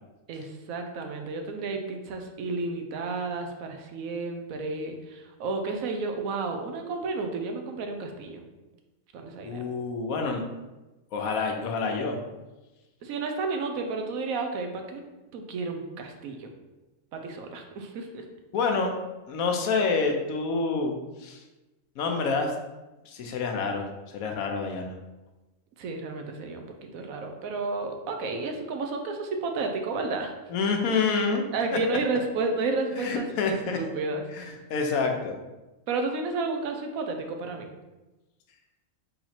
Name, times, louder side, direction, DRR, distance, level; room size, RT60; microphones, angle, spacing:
voice 1, 0.3-8.4 9.1-9.6 13.0-15.0 15.3-16.5 17.1-18.2 25.8-30.3 31.5-34.5 35.9-37.7, right 3 dB, 80° right, 4 dB, 1.1 m, -32 dB
voice 2, 9.4-10.4 11.1-12.2 18.5-18.9 19.3-21.4 22.0-22.5 23.1-23.8 24.1-24.9 30.5-31.4 33.0-33.8 34.3-35.3, left 4 dB, 80° left, 3 dB, 1.1 m, -27 dB
3.9 x 2.9 x 4.2 m, 1.1 s
omnidirectional pair, 1.5 m